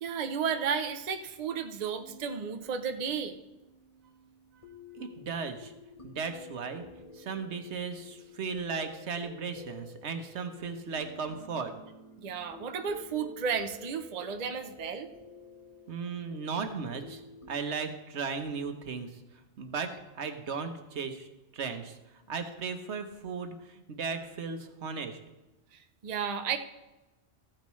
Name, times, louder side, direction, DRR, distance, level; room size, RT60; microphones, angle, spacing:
voice 1, 0.0-3.4 12.2-15.1 25.7-26.6, right 6 dB, 45° right, 6 dB, 0.7 m, -33 dB
sound 1, 2.0-17.5, left 2 dB, 30° left, 1.1 m, -51 dB
voice 2, 4.9-5.7 6.0-6.8 7.1-11.7 15.9-17.2 17.5-19.1 19.6-21.3 21.5-22.0 22.3-25.2, right 5 dB, 75° right, 7 dB, 1.2 m, -36 dB
14.0 x 8.9 x 3.1 m, 1.0 s
omnidirectional pair, 1.2 m